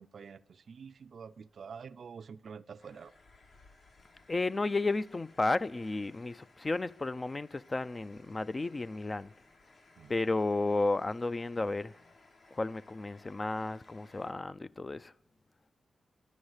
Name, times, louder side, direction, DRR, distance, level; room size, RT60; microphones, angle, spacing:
voice 1, 0.0-3.1 10.0-10.1, right 6 dB, 65° right, 0.5 m, -47 dB
sound 1, 2.8-14.3, left 3 dB, 65° left, 1.9 m, -61 dB
voice 2, 4.3-9.3 10.1-11.9 12.5-15.1, left 2 dB, 30° left, 0.4 m, -33 dB
11.5 x 9.7 x 7.9 m
cardioid pair, 80°, 0 cm